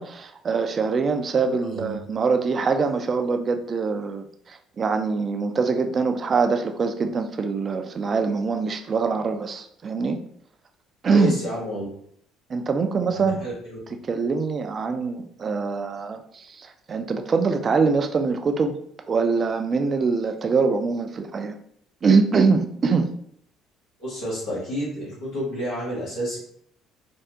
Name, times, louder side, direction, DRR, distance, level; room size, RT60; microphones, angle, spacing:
voice 1, 0.0-10.2 11.0-11.3 12.5-13.4 14.1-18.8 19.1-21.6 22.0-23.1, right 4 dB, 40° right, 6 dB, 0.5 m, -23 dB
voice 2, 1.6-2.0 11.1-11.9 13.1-13.8 24.0-26.4, equal, 75° left, -10 dB, 1.4 m, -30 dB
3.4 x 2.3 x 2.9 m, 0.67 s
hypercardioid pair, 60°, 0 cm